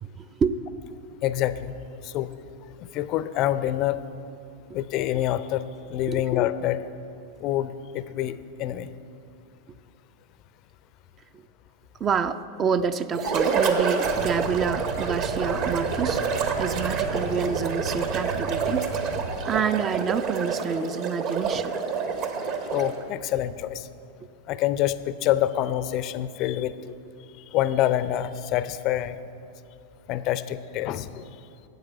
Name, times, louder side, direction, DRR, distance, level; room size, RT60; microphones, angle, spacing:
voice 1, 0.0-0.5 6.1-6.2 11.3-11.4 12.0-16.2 16.6-19.1 19.5-21.7 24.2-24.3, right 6 dB, 25° right, 12 dB, 0.4 m, -28 dB
voice 2, 1.2-1.7 2.0-2.3 2.8-4.0 4.7-5.6 5.9-6.8 7.4-8.9 22.7-23.9 24.5-26.7 27.5-29.2 30.1-31.3, left 12 dB, 40° left, 14 dB, 0.5 m, -26 dB
sound 1, 13.1-23.0, right 5 dB, 40° right, 1.2 m, -27 dB
sound 2, 14.0-19.3, right 3 dB, 60° right, 1.5 m, -34 dB
12.0 x 8.0 x 7.3 m, 2.6 s
figure-of-eight pair, 90°, 0 cm